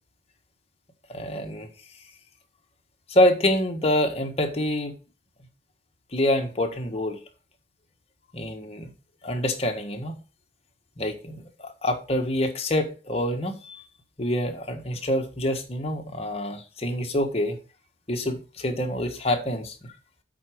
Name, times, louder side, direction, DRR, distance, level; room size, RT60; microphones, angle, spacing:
voice 1, 1.1-1.7 3.1-4.9 6.1-7.2 8.3-8.9 9.2-10.2 11.0-13.8 14.2-17.6 18.1-19.9, left 1 dB, 35° left, 1.5 m, -26 dB
8.4 x 4.8 x 6.4 m
head